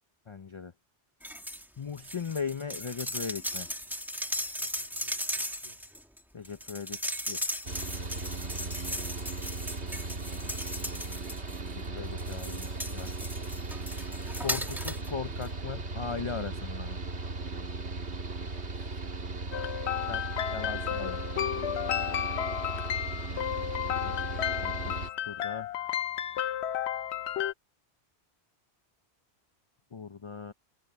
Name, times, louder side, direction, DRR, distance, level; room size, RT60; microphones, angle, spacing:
voice 1, 0.3-0.7 1.8-3.7 6.3-7.0 7.3-7.4 11.7-13.1 14.4-17.0 20.1-20.2 20.5-21.2 24.0-24.2 24.6-25.0 25.2-25.7 29.9-30.5, left 5 dB, 35° left, 0.6 m, -38 dB
sound 1, 1.2-1.7 2.0-11.7 12.2-15.1 15.4-15.5, equal, ahead, 2.0 m, -37 dB
voice 2, 4.6-5.9 21.5-22.7, equal, 40° right, 8.0 m, -63 dB
Mechanical fan, 7.6-25.1, right 3 dB, 75° right, 2.3 m, -37 dB
sound 2, 19.5-27.5, left 10 dB, 75° left, 1.0 m, -32 dB
omnidirectional pair, 1.1 m